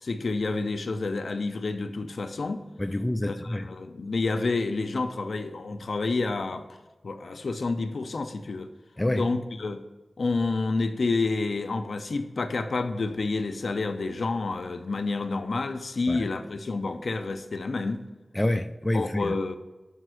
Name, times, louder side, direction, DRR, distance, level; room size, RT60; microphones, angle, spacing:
voice 1, 0.0-2.6 3.2-6.7 7.0-8.7 9.1-9.9 10.2-18.1 18.9-19.6, left 3 dB, 75° left, 8 dB, 0.5 m, -29 dB
voice 2, 2.8-3.7 9.0-9.2 16.1-16.3 18.3-19.3, left 1 dB, 20° left, 9 dB, 0.4 m, -27 dB
5.4 x 4.9 x 6.2 m, 1.1 s
cardioid pair, 45°, 0 cm